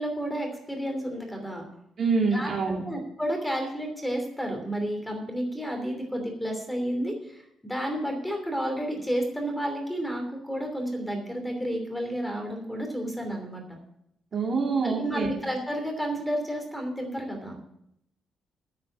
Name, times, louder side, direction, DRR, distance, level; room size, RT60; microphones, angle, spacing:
voice 1, 0.0-1.6 2.3-2.6 2.8-13.8 14.8-17.6, equal, 5° left, 3 dB, 3.0 m, -31 dB
voice 2, 2.0-2.8 14.3-15.3, right 4 dB, 45° right, 0 dB, 2.8 m, -25 dB
11.0 x 6.1 x 8.6 m, 0.76 s
cardioid pair, 90°, 0 cm